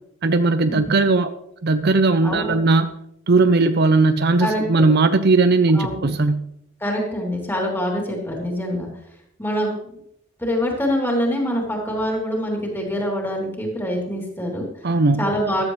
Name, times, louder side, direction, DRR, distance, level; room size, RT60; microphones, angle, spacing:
voice 1, 0.2-1.3 1.6-2.9 3.3-6.4 14.8-15.2, right 3 dB, 50° right, 10 dB, 0.6 m, -18 dB
voice 2, 2.2-2.6 4.4-4.9 5.7-6.1 6.8-8.9 9.4-9.9 10.4-14.7 15.2-15.6, equal, 10° left, -1 dB, 3.1 m, -25 dB
15.5 x 13.5 x 3.2 m, 0.76 s
head